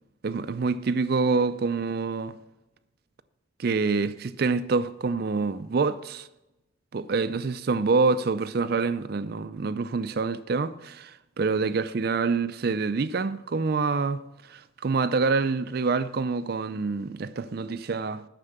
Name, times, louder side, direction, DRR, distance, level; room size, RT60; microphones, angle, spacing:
voice 1, 0.2-2.3 3.6-6.3 6.9-14.2 14.5-18.2, right 4 dB, 50° right, 0.4 m, -26 dB
9.6 x 6.7 x 6.6 m
head